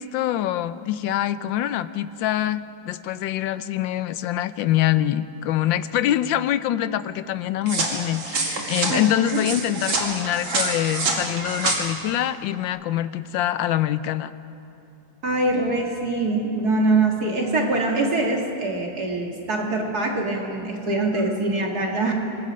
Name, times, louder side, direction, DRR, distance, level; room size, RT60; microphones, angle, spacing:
voice 1, 0.0-14.3, left 12 dB, 75° left, 14 dB, 1.3 m, -25 dB
sound 1, 7.7-11.8, right 3 dB, 80° right, 3.1 m, -26 dB
voice 2, 8.9-9.4 15.2-22.1, right 2 dB, 50° right, 0 dB, 2.3 m, -23 dB
25.5 x 20.0 x 5.2 m, 2.7 s
omnidirectional pair, 2.2 m